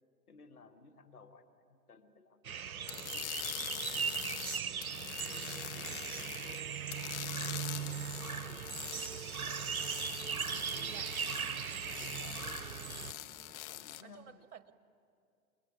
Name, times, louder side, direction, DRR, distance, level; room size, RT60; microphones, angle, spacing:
voice 1, 0.3-2.6 3.1-4.3 5.2-6.7 7.3-9.8 10.3-11.2 11.6-12.7 13.7-14.5, left 4 dB, 80° left, 7 dB, 1.6 m, -59 dB
sound 1, 2.4-13.1, right 7 dB, 70° right, 0.8 m, -39 dB
sound 2, 2.9-6.6 6.9-14.0, left 14 dB, 50° left, 1.1 m, -44 dB
sound 3, 5.7-13.6, right 3 dB, 15° right, 1.1 m, -60 dB
voice 2, 10.8-11.1 13.8-14.7, right 8 dB, 50° right, 13 dB, 1.4 m, -54 dB
27.0 x 22.0 x 9.6 m, 2.5 s
figure-of-eight pair, 100°, 44 cm